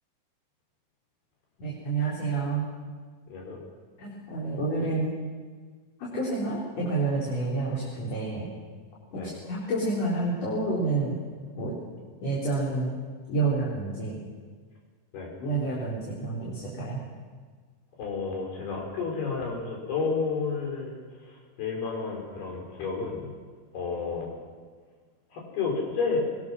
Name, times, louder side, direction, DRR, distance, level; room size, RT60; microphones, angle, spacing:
voice 1, 1.6-2.7 4.0-5.1 6.0-8.5 9.1-11.2 11.6-11.8 12.2-13.0 13.3-14.2 15.4-17.0, right 3 dB, 45° left, -6 dB, 4.5 m, -29 dB
voice 2, 18.0-21.0 21.3-23.3 23.7-24.4 25.3-26.2, left 4 dB, 90° left, -1 dB, 6.2 m, -31 dB
21.0 x 21.0 x 6.1 m, 1.5 s
omnidirectional pair, 4.4 m